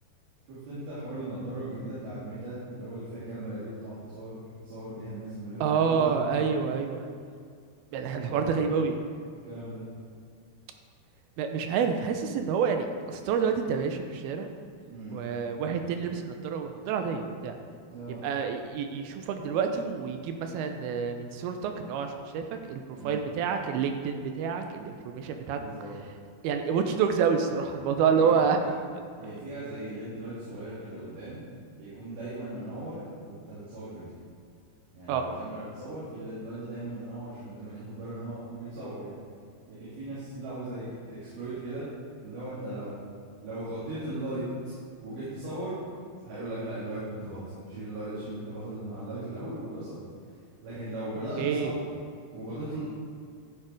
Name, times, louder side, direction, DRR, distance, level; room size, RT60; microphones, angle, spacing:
voice 1, 0.5-6.8 8.2-8.7 9.4-9.8 14.9-15.2 17.9-18.2 22.9-23.2 25.5-25.9 28.1-28.7 29.2-31.4 31.7-34.1 34.9-39.1 39.7-41.9 42.2-43.0 43.4-44.4 45.0-45.8 46.2-47.4 47.7-50.0 50.6-51.8 52.3-52.8, right 1 dB, 65° right, -12 dB, 4.8 m, -38 dB
voice 2, 5.6-7.1 7.9-9.0 11.4-14.5 15.1-17.6 18.2-25.6 26.4-28.6 35.1-35.2 51.4-51.7, right 6 dB, 80° right, 5 dB, 2.5 m, -28 dB
12.5 x 7.3 x 4.8 m, 2.2 s
omnidirectional pair, 4.8 m